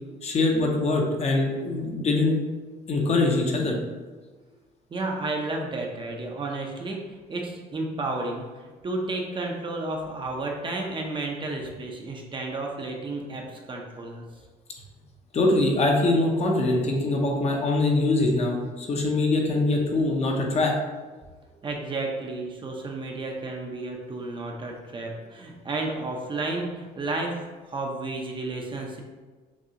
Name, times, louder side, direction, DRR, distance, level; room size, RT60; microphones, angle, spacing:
voice 1, 0.2-2.4 2.9-3.8 15.3-20.7, left 2 dB, 40° left, 1 dB, 0.7 m, -23 dB
voice 2, 4.9-14.2 21.6-29.0, right 2 dB, 30° right, 1 dB, 0.6 m, -32 dB
6.1 x 2.3 x 2.8 m, 1.3 s
cardioid pair, 110°, 17 cm